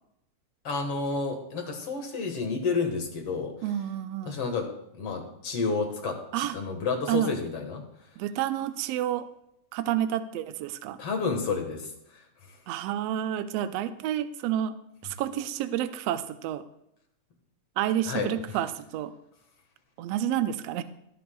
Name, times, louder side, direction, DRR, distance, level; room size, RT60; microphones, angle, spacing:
voice 1, 0.6-3.5 4.3-4.7 4.9-7.8 11.0-12.2 18.0-18.6, left 4 dB, 55° left, 3 dB, 2.4 m, -30 dB
voice 2, 3.6-4.4 6.3-6.6 7.1-7.3 8.2-9.3 9.7-11.0 12.7-14.8 15.0-16.6 17.8-19.1 20.0-20.8, right 11 dB, 75° right, 11 dB, 1.6 m, -29 dB
23.5 x 9.5 x 2.3 m, 0.79 s
omnidirectional pair, 3.3 m